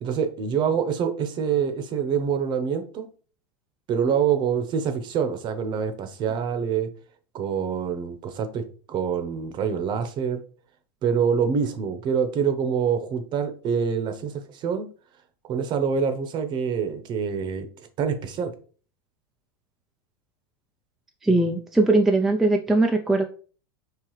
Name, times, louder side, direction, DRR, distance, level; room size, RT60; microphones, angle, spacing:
voice 1, 0.0-3.1 3.9-6.9 7.3-10.4 11.0-14.9 15.5-17.7 18.0-18.5, right 7 dB, 35° right, 8 dB, 0.8 m, -26 dB
voice 2, 21.2-23.2, right 2 dB, ahead, 2 dB, 0.3 m, -20 dB
4.8 x 3.3 x 3.1 m, 0.40 s
supercardioid pair, 125°, 13 cm